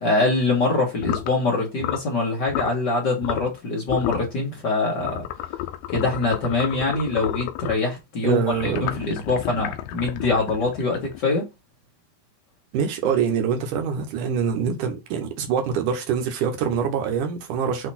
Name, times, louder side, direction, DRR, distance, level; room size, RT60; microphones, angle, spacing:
voice 1, 0.0-5.2 5.9-11.4, left 3 dB, 60° left, 1.1 m, -24 dB
sound 1, 1.0-1.3 1.8-2.1 2.5-2.8 3.2-3.6 3.9-4.3 5.0-7.9 8.5-11.4, left 13 dB, 90° left, 2.7 m, -31 dB
voice 2, 8.2-8.9 12.7-17.9, right 7 dB, 70° right, 2.1 m, -24 dB
8.0 x 3.0 x 4.2 m
omnidirectional pair, 4.6 m